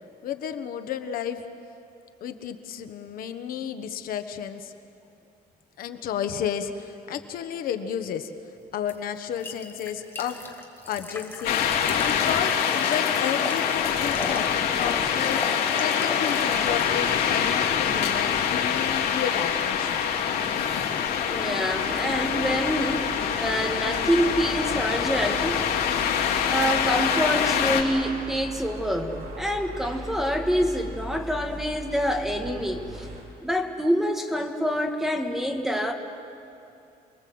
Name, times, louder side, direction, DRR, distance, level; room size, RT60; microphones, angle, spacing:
voice 1, 0.2-1.4 2.2-4.7 5.8-8.3 8.7-10.4 10.9-11.6 12.0-14.5 14.8-15.4 15.8-20.1, left 9 dB, 60° left, 8 dB, 1.2 m, -32 dB
sound 1, 8.9-16.7, left 3 dB, 15° left, 1.6 m, -37 dB
sound 2, 11.4-27.8, left 8 dB, 80° left, 3.1 m, -25 dB
voice 2, 21.2-25.6 26.5-33.1 33.4-35.9, equal, ahead, 3 dB, 1.5 m, -26 dB
sound 3, 21.6-33.2, equal, 60° right, 6.2 m, -40 dB
28.0 x 21.5 x 7.8 m, 2.6 s
cardioid pair, 175°, 16 cm